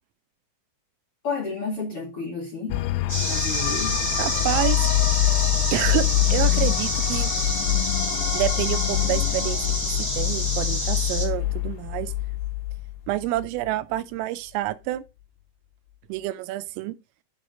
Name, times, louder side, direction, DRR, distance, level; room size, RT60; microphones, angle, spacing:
voice 1, 1.2-2.8 3.3-4.0, left 4 dB, 50° left, 1.8 m, -31 dB
sound 1, 2.7-13.7, left 14 dB, 90° left, 2.6 m, -25 dB
sound 2, 3.1-11.3, equal, 10° left, 1.5 m, -28 dB
voice 2, 4.2-4.9 5.7-7.3 8.3-12.1 13.1-15.0 16.1-17.0, right 16 dB, 85° right, 3.3 m, -28 dB
8.7 x 4.7 x 5.1 m
omnidirectional pair, 5.9 m